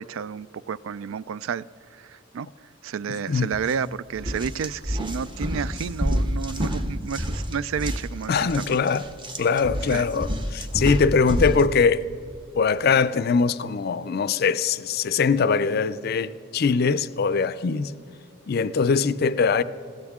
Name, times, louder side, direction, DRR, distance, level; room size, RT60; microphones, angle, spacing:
voice 1, 0.0-2.5 2.8-8.8 9.9-10.1, right 7 dB, 70° right, 0.3 m, -31 dB
sound 1, 3.5-3.7 4.1-11.7, equal, 25° right, 0.9 m, -29 dB
voice 2, 8.3-9.0 9.4-12.0 12.5-17.9 18.5-19.6, left 5 dB, 50° left, 0.4 m, -22 dB
20.5 x 16.5 x 3.6 m
head